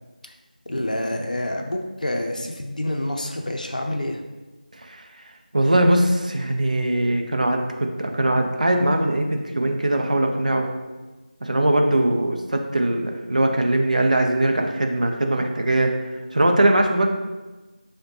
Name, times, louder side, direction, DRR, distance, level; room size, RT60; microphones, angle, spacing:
voice 1, 0.7-4.2 12.0-12.1, left 1 dB, 60° left, 2 dB, 0.5 m, -27 dB
voice 2, 5.5-10.7 11.4-15.9 16.3-17.1, right 1 dB, 55° right, 3 dB, 0.4 m, -21 dB
5.0 x 2.2 x 2.8 m, 1.2 s
figure-of-eight pair, 170°, 5 cm